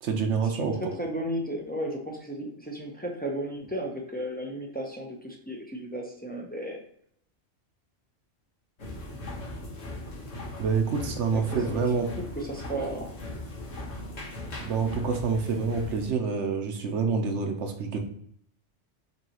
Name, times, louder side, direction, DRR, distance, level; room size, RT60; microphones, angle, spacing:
voice 1, 0.0-0.9 10.6-12.1 14.6-18.0, right 5 dB, 70° right, 4 dB, 1.0 m, -27 dB
voice 2, 1.0-6.8 11.3-11.4 11.7-11.9 12.4-13.1, right 1 dB, 10° left, 0 dB, 0.4 m, -34 dB
sound 1, 8.8-16.1, left 1 dB, 80° left, 1.6 m, -39 dB
5.4 x 2.9 x 2.9 m, 0.67 s
omnidirectional pair, 1.3 m